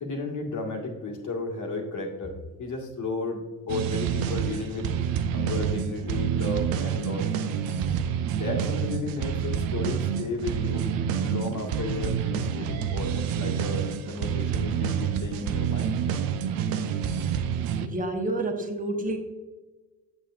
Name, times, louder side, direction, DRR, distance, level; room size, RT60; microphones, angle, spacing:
voice 1, 0.0-2.3 2.6-4.9 5.3-7.3 8.3-10.9 11.2-16.0, left 3 dB, 50° left, 1 dB, 1.8 m, -33 dB
sound 1, 3.7-17.9, right 8 dB, 60° right, 0.7 m, -28 dB
voice 2, 17.8-19.2, right 2 dB, 20° right, 4 dB, 1.2 m, -29 dB
7.7 x 6.4 x 2.5 m, 1.2 s
supercardioid pair, 80°, 39 cm